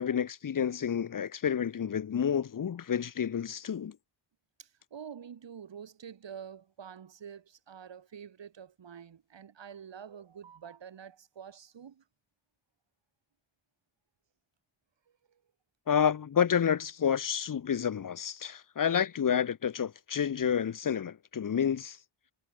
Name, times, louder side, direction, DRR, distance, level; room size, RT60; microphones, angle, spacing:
voice 1, 0.0-4.0 15.9-22.0, left 8 dB, 40° left, 1.0 m, -29 dB
voice 2, 4.6-12.0 15.3-15.4, right 7 dB, 60° right, 6.2 m, -47 dB
cardioid pair, 75°, 49 cm